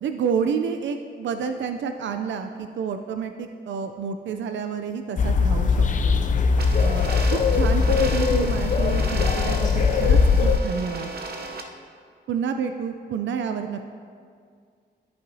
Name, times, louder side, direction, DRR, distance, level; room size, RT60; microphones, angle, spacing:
voice 1, 0.0-6.2 6.8-11.1 12.3-13.9, right 6 dB, 80° right, 7 dB, 0.4 m, -29 dB
sound 1, 5.2-10.6, left 5 dB, 45° left, 0.4 m, -20 dB
sound 2, 6.6-11.6, right 3 dB, 55° right, 0.7 m, -35 dB
13.5 x 5.6 x 2.7 m, 2.1 s
wide cardioid pair, 120°, 19 cm